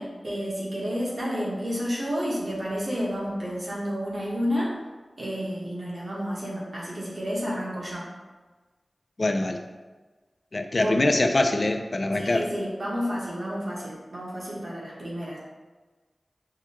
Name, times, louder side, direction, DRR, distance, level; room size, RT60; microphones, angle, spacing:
voice 1, 0.0-4.7 5.2-8.0 10.7-11.1 12.1-15.4, equal, 60° right, -5 dB, 0.9 m, -30 dB
voice 2, 9.2-9.6 10.5-12.5, left 2 dB, 50° left, 5 dB, 0.3 m, -24 dB
4.8 x 2.2 x 2.8 m, 1.3 s
wide cardioid pair, 70°, 0 cm